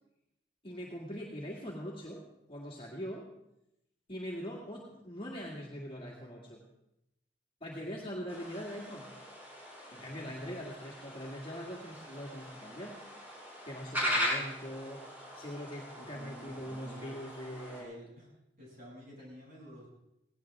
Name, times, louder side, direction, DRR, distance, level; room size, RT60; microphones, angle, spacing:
voice 1, 0.6-2.2 2.5-3.3 4.1-6.6 7.6-9.1 9.9-13.0 13.6-15.0 15.4-18.0, equal, 30° left, -3 dB, 2.3 m, -42 dB
sound 1, 8.3-17.8, equal, 10° right, 5.6 m, -40 dB
voice 2, 9.9-10.4 16.0-17.2 17.8-18.3 18.6-19.9, equal, 50° right, -4 dB, 7.8 m, -51 dB
18.0 x 17.5 x 3.6 m, 0.86 s
head